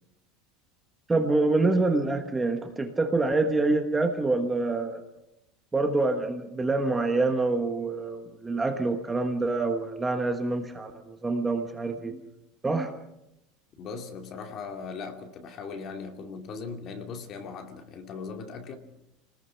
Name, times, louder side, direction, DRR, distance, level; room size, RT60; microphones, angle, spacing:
voice 1, 1.1-5.0 5.7-12.2 12.6-12.9, right 3 dB, 10° right, 1.3 m, -26 dB
voice 2, 13.8-18.8, left 5 dB, 30° left, 2.4 m, -39 dB
28.0 x 20.0 x 5.8 m
cardioid pair, 180°, 0 cm